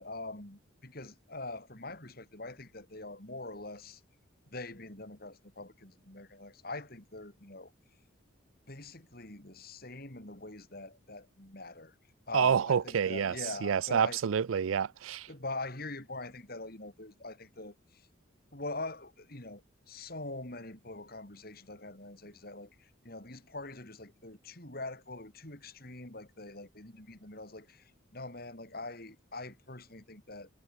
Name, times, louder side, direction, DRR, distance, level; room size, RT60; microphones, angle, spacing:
voice 1, 0.0-4.0 4.5-7.7 8.7-11.9 12.3-14.2 15.3-18.1 18.5-19.6 19.9-30.5, left 2 dB, 50° left, 4.4 m, -43 dB
voice 2, 12.3-13.4 13.6-15.3, right 7 dB, 80° right, 0.4 m, -28 dB
head